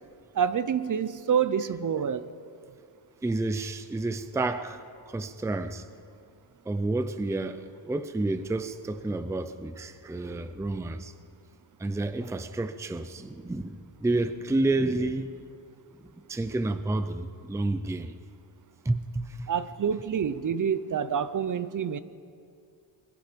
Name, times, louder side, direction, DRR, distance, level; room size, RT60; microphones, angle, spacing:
voice 1, 0.3-2.3 19.5-22.0, right 7 dB, 45° right, 0.7 m, -27 dB
voice 2, 3.2-5.8 6.7-11.1 11.8-15.3 16.3-18.1 18.8-19.5, right 2 dB, 5° right, 0.5 m, -30 dB
28.5 x 21.5 x 5.2 m
wide cardioid pair, 170°, 44 cm